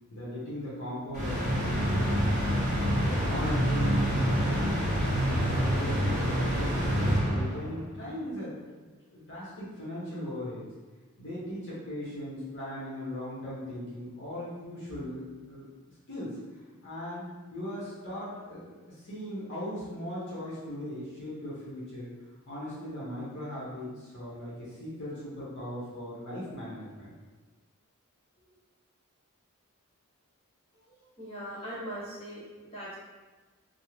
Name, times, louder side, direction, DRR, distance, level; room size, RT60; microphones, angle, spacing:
voice 1, 0.1-2.4 3.0-4.9 5.2-8.5 9.1-10.6 11.2-15.7 16.1-22.1 22.5-27.1, left 1 dB, 55° left, -9 dB, 0.8 m, -38 dB
sound 1, 1.1-7.8, equal, 35° right, 0.8 m, -27 dB
voice 2, 31.2-32.9, equal, 30° left, -10 dB, 1.0 m, -40 dB
2.6 x 2.0 x 3.0 m, 1.3 s
head